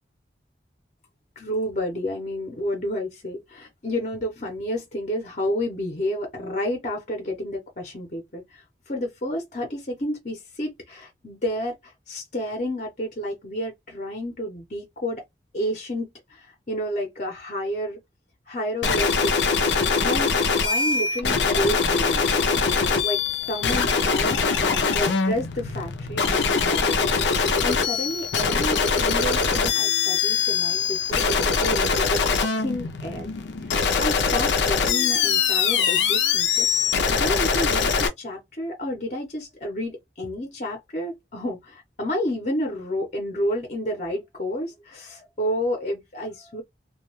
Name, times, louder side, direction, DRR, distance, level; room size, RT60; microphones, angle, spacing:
voice 1, 1.4-15.2 15.5-18.0 18.5-19.3 20.0-22.6 23.0-23.2 23.5-27.0 27.6-33.3 33.6-46.6, equal, 45° left, 0.8 m, -30 dB
sound 1, 18.8-38.1, left 5 dB, 85° left, 0.5 m, -22 dB
2.3 x 2.2 x 3.0 m
head